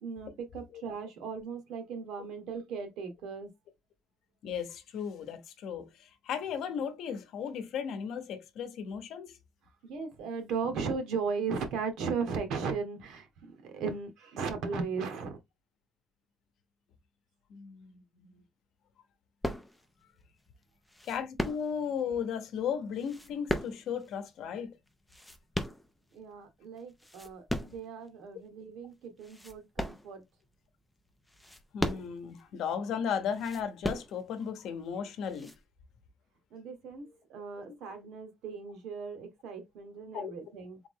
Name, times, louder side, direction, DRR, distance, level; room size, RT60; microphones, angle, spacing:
voice 1, 0.0-3.5 9.8-15.4 26.1-30.2 36.5-40.8, right 5 dB, 85° right, 1.2 m, -37 dB
voice 2, 4.4-9.4 17.5-18.4 21.0-24.7 31.7-35.5 40.1-40.3, left 7 dB, 70° left, 0.8 m, -35 dB
sound 1, 19.4-20.0 20.9-22.0 22.9-24.1 24.9-26.3 26.8-27.9 28.4-28.5 29.2-30.5 31.2-32.4 33.3-34.5 35.2-35.6, left 1 dB, 5° left, 0.5 m, -36 dB
3.6 x 3.1 x 3.6 m
cardioid pair, 170°, 0 cm